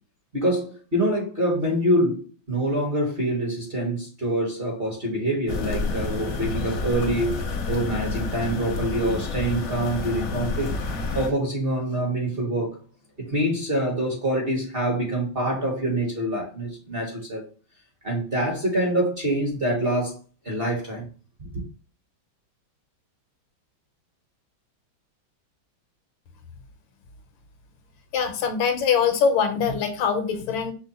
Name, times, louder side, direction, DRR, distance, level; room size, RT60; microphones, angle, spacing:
voice 1, 0.3-2.2 2.5-10.7 11.1-12.8 13.2-17.4 18.0-20.2 20.4-21.1 21.4-21.6, right 1 dB, 35° right, 1.0 m, -25 dB
sound 1, 5.5-11.3, left 3 dB, 60° left, 0.9 m, -29 dB
voice 2, 28.1-30.7, left 6 dB, 75° left, 1.4 m, -23 dB
5.6 x 2.1 x 3.9 m
omnidirectional pair, 2.2 m